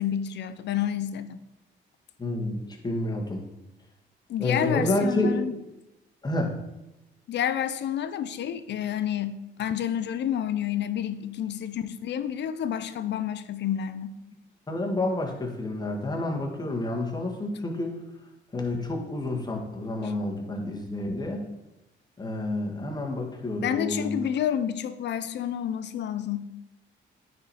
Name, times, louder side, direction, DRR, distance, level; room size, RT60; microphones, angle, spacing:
voice 1, 0.0-1.4 4.3-5.6 7.3-14.2 23.6-26.5, left 9 dB, 60° left, 12 dB, 0.5 m, -29 dB
voice 2, 2.2-3.4 4.4-5.4 6.2-6.5 14.7-18.0 18.5-21.5 22.2-24.2, left 2 dB, 20° left, 0 dB, 1.8 m, -29 dB
9.5 x 4.3 x 4.7 m, 0.95 s
cardioid pair, 90°, 20 cm